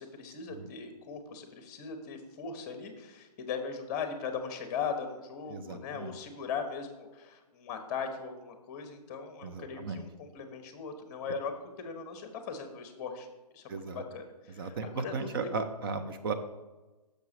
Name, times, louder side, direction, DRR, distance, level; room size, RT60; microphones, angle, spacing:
voice 1, 0.0-11.5 11.8-13.3 13.5-15.5, left 6 dB, 25° left, 6 dB, 1.0 m, -39 dB
voice 2, 5.5-6.1 9.4-10.0 13.7-14.0 14.6-16.3, right 4 dB, 35° right, 8 dB, 0.5 m, -36 dB
6.6 x 4.6 x 6.1 m, 1.1 s
hypercardioid pair, 150°, 21 cm